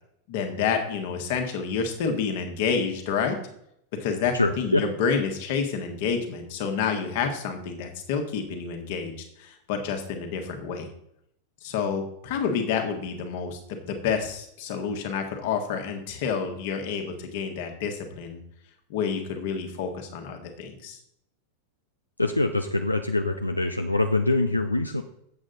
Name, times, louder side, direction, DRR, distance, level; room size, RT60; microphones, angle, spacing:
voice 1, 0.3-3.4 4.0-10.9 11.6-18.4 18.9-21.0, left 6 dB, 50° left, 5 dB, 1.6 m, -29 dB
voice 2, 4.3-4.8 22.2-25.0, left 2 dB, 85° left, 6 dB, 0.5 m, -24 dB
7.8 x 7.7 x 3.9 m, 0.73 s
figure-of-eight pair, 90°, 0 cm